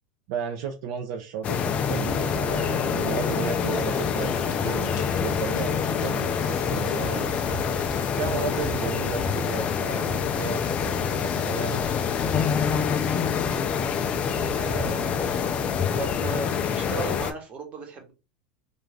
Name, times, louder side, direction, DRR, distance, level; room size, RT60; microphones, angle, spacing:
voice 1, 0.3-7.4 7.7-12.9, right 7 dB, 65° right, 0.5 m, -34 dB
sound 1, 1.4-17.3, left 7 dB, 30° left, 0.4 m, -26 dB
Rain, 3.1-8.1, left 6 dB, 65° left, 0.7 m, -45 dB
Cheering, 3.2-4.8 5.1-6.5 6.9-8.3 8.6-10.0 10.3-11.8 12.1-13.5, left 2 dB, 10° left, 1.0 m, -47 dB
voice 2, 14.5-15.4 15.9-18.1, right 3 dB, 30° right, 1.0 m, -36 dB
2.5 x 2.2 x 3.2 m
supercardioid pair, 125°, 4 cm